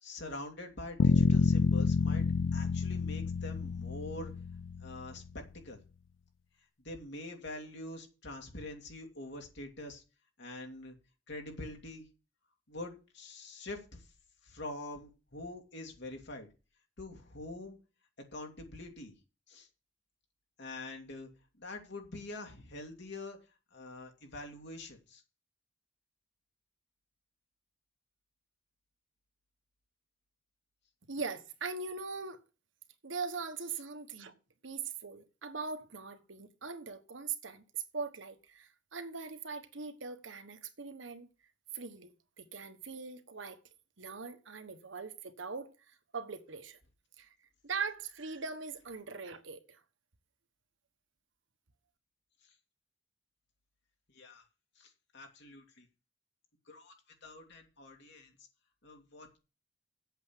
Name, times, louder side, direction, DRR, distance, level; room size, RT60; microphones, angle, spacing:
voice 1, 0.0-2.2 2.5-4.3 4.8-5.2 5.5-5.8 6.8-10.0 10.4-11.0 11.3-12.1 12.7-14.0 14.4-16.5 17.0-17.8 18.3-19.2 19.5-19.7 20.6-21.3 21.6-23.4 23.7-25.2 52.4-52.5 54.1-54.4 54.8-55.9 56.7-56.9 57.2-58.3 58.8-59.4, left 2 dB, 65° left, 2.7 m, -45 dB
sound 1, 1.0-5.1, left 4 dB, 90° left, 0.5 m, -29 dB
voice 2, 31.1-32.4 33.0-34.3 34.6-41.3 41.7-42.1 42.4-43.6 44.0-46.8 47.2-47.4 47.6-49.8, right 5 dB, 75° right, 1.3 m, -41 dB
8.2 x 6.8 x 8.1 m
head